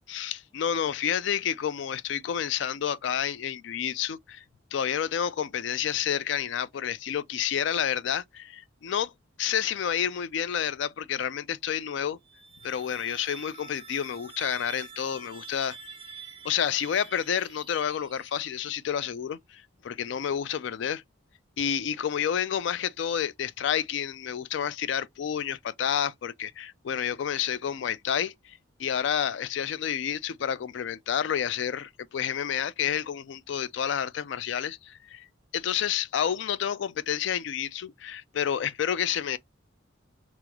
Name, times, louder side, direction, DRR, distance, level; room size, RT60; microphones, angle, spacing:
voice 1, 0.1-4.4 4.7-9.1 9.4-12.2 12.6-15.8 16.4-21.0 21.6-35.3 35.5-39.4, left 8 dB, 65° left, 0.3 m, -29 dB
sound 1, 12.2-18.8, right 5 dB, 30° right, 0.4 m, -47 dB
3.5 x 2.0 x 2.9 m
head